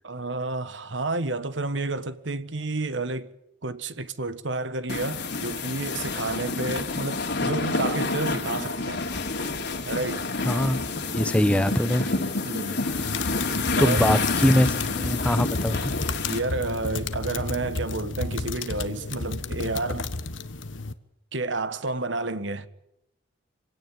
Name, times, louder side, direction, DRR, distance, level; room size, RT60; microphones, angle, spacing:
voice 1, 0.0-3.3 3.6-9.1 9.8-10.3 12.4-12.9 13.8-14.1 16.3-20.1 21.3-22.7, right 2 dB, 75° right, 1.5 m, -30 dB
sound 1, 4.9-16.4, left 3 dB, 65° left, 3.1 m, -28 dB
voice 2, 10.4-10.8 11.1-12.2 12.8-13.3 13.8-16.0, equal, 5° left, 0.8 m, -23 dB
sound 2, 12.9-20.9, left 3 dB, 85° left, 1.5 m, -32 dB
26.0 x 17.0 x 9.2 m
head